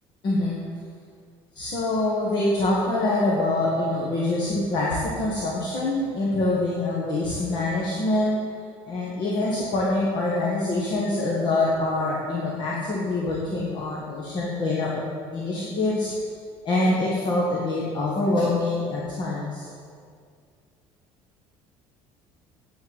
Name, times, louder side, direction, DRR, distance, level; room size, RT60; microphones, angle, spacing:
voice 1, 0.2-0.6 1.6-8.4 8.9-15.0 15.3-16.1 16.7-19.7, left 2 dB, 40° left, -5 dB, 1.7 m, -25 dB
9.2 x 7.7 x 8.2 m, 2.2 s
cardioid pair, 175°, 12 cm